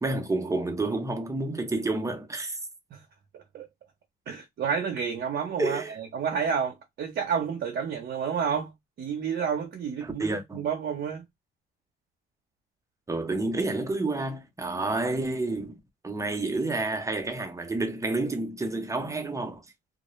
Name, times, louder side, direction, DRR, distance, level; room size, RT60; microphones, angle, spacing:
voice 1, 0.0-2.6 5.6-6.0 10.0-10.6 13.1-15.8 16.0-19.6, right 2 dB, 15° right, 0.7 m, -29 dB
voice 2, 3.3-3.7 4.3-8.7 9.0-11.2, right 7 dB, 60° right, 0.7 m, -30 dB
2.3 x 2.1 x 3.0 m
cardioid pair, 90°, 20 cm